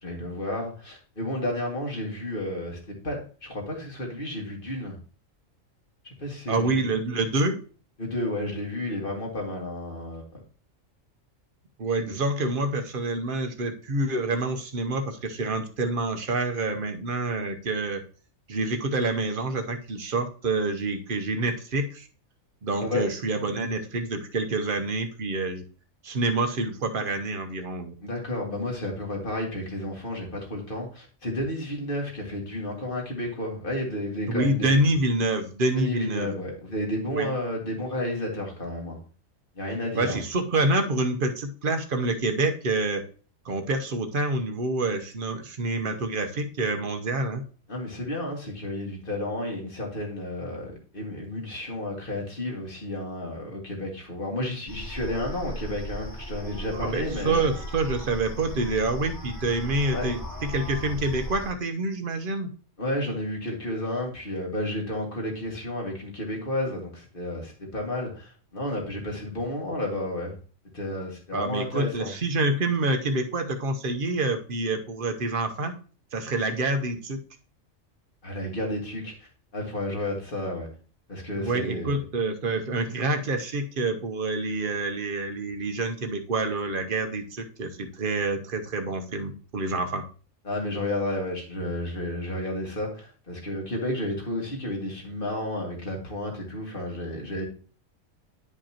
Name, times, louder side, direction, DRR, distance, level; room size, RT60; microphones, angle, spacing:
voice 1, 0.0-5.0 6.0-6.9 8.0-10.3 12.0-12.1 22.8-23.1 28.0-34.8 35.7-39.0 39.6-40.2 47.7-57.5 59.9-60.1 62.8-70.4 70.7-72.1 78.2-79.3 79.5-80.7 81.1-82.0 90.4-97.4, left 1 dB, 40° left, 0 dB, 2.1 m, -32 dB
voice 2, 6.5-7.6 11.8-18.0 18.5-22.1 22.6-25.6 26.0-27.9 34.3-36.3 37.1-37.3 39.9-43.0 43.4-47.4 56.7-62.5 71.3-75.7 76.1-77.2 81.4-90.0, right 2 dB, 45° right, 6 dB, 1.0 m, -27 dB
sound 1, 54.7-61.5, equal, 15° left, 2.1 m, -37 dB
10.5 x 5.2 x 2.9 m, 0.39 s
omnidirectional pair, 1.4 m